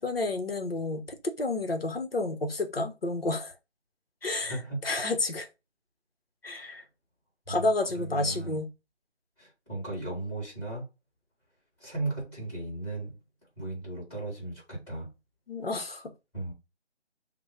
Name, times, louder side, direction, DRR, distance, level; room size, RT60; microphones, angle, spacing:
voice 1, 0.0-3.5 4.2-4.6 4.8-5.5 6.4-6.8 7.5-8.7 15.5-16.0, left 2 dB, 55° left, 0.9 m, -30 dB
voice 2, 4.4-5.0 6.5-6.8 7.5-7.7 7.9-8.6 9.4-10.8 11.8-13.2 13.6-15.1 16.3-16.5, right 2 dB, 5° left, 2.5 m, -36 dB
6.1 x 2.1 x 3.0 m
figure-of-eight pair, 170°, 35 cm